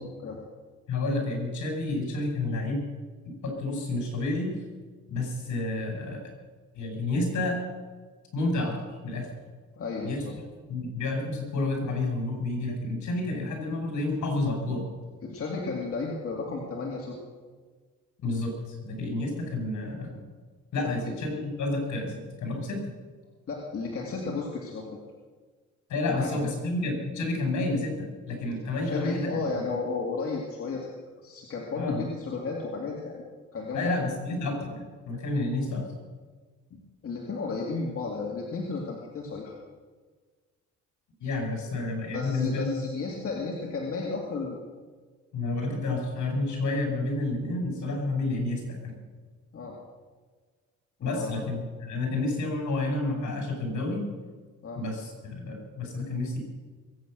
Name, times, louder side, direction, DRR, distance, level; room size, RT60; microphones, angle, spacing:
voice 1, 0.9-2.8 3.4-4.5 5.1-6.2 6.7-7.6 8.3-8.8 9.0-9.3 10.0-10.2 10.7-14.9 18.2-20.2 20.7-22.8 25.9-29.3 31.8-32.1 33.7-35.9 41.2-42.7 45.3-48.9 51.0-54.1 54.8-56.4, left 2 dB, 70° left, 2 dB, 5.6 m, -30 dB
voice 2, 9.8-10.3 15.2-17.2 20.8-21.1 23.5-25.0 26.1-26.3 28.8-30.9 31.2-33.2 33.5-34.0 36.7-39.5 42.1-44.6 49.5-49.8 51.0-51.4 54.6-54.8, left 4 dB, 50° left, -1 dB, 2.5 m, -33 dB
21.5 x 8.6 x 6.4 m, 1.4 s
cardioid pair, 90°, 30 cm